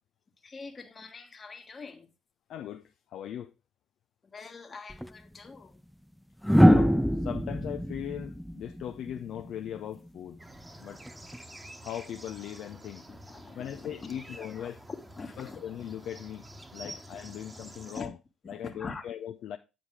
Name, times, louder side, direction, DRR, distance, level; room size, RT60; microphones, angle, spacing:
voice 1, 0.4-2.1 4.2-5.8 13.1-15.7 16.8-16.9 17.2-17.4 17.9-18.1 18.4-19.1, left 4 dB, 35° left, 1.7 m, -44 dB
voice 2, 2.5-3.5 6.5-10.4 10.8-11.0 11.8-13.1 13.5-14.8 15.4-16.5 16.7-18.1 18.5-19.6, left 10 dB, 60° left, 0.5 m, -39 dB
sound 1, 4.9-5.1 6.4-9.5 11.1-11.4, equal, ahead, 0.4 m, -23 dB
sound 2, 10.4-18.0, right 1 dB, 15° right, 1.2 m, -48 dB
9.5 x 5.2 x 4.7 m
figure-of-eight pair, 50°, 0 cm